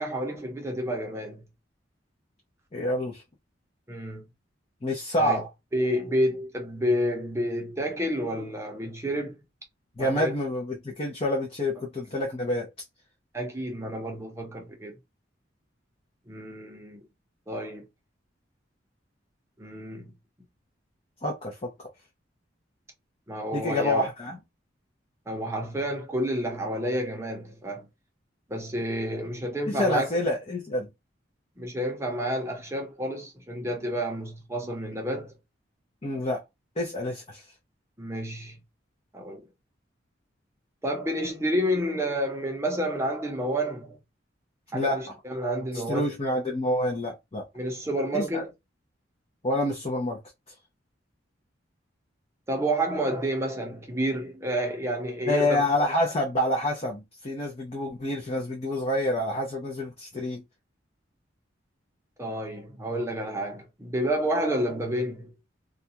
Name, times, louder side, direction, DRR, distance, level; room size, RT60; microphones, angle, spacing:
voice 1, 0.0-1.4 3.9-4.2 5.2-5.4 5.7-9.4 10.0-10.3 13.3-14.9 16.3-17.0 17.5-17.8 19.6-20.1 23.3-24.0 25.3-27.9 28.5-30.1 31.6-35.3 38.0-38.6 39.1-39.4 40.8-44.0 44.7-46.1 47.6-48.4 52.5-55.6 62.2-65.3, equal, 15° right, 0.6 m, -29 dB
voice 2, 2.7-3.2 4.8-5.5 10.0-12.7 21.2-21.9 23.5-24.4 29.7-30.9 36.0-36.4 36.8-37.5 44.7-45.0 45.7-47.5 48.1-48.4 49.4-50.2 55.3-60.4, left 1 dB, 30° left, 0.6 m, -28 dB
2.4 x 2.2 x 2.7 m
head